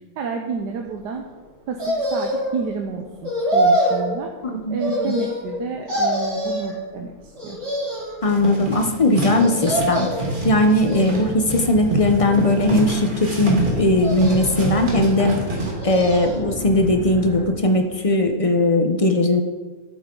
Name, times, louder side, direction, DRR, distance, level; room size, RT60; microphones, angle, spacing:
voice 1, 0.2-1.2 1.7-4.3 4.7-7.6, right 5 dB, 85° right, 2 dB, 1.4 m, -30 dB
sound 1, 1.8-2.6 3.2-4.1 4.8-5.6 5.9-6.7 7.4-8.2 9.4-10.3 10.8-11.5 12.2-12.9 14.0-14.8 15.5-16.4 16.8-16.9, equal, 60° right, 4.1 m, -25 dB
voice 2, 4.4-5.1 8.2-15.4 15.8-19.4, left 1 dB, 45° left, 5 dB, 0.4 m, -19 dB
sound 2, 8.2-15.7, right 2 dB, 30° right, 1.8 m, -27 dB
sound 3, 10.0-17.4, equal, 10° right, 3.1 m, -34 dB
12.0 x 8.9 x 3.8 m, 1.3 s
omnidirectional pair, 1.8 m